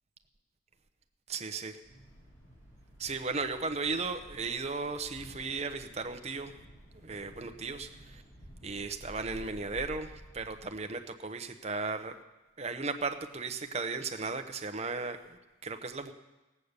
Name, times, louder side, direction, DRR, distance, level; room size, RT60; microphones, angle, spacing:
voice 1, 1.3-1.8 3.0-6.5 7.0-8.2 8.6-12.2 12.6-16.1, right 4 dB, 30° right, 7 dB, 0.8 m, -36 dB
Thunder, 1.8-10.8, equal, 35° left, 5.4 m, -52 dB
17.5 x 8.4 x 6.7 m, 1.1 s
head